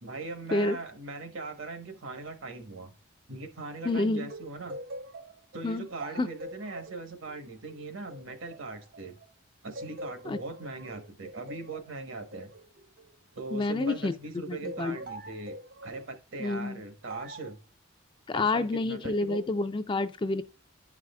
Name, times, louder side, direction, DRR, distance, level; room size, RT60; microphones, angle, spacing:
voice 1, 0.0-2.9 3.3-4.8 5.5-9.2 9.6-12.5 13.3-15.6 15.8-17.6 18.3-19.4, right 3 dB, 70° right, 1.2 m, -40 dB
voice 2, 3.8-4.3 5.6-5.9 6.2-6.3 10.2-10.4 13.5-14.2 14.5-15.0 16.4-16.8 18.3-20.4, left 2 dB, 25° left, 0.3 m, -28 dB
sound 1, 4.3-9.3 9.8-14.1 14.6-16.1 17.1-17.5, right 1 dB, 45° right, 0.5 m, -44 dB
10.0 x 4.8 x 2.3 m
head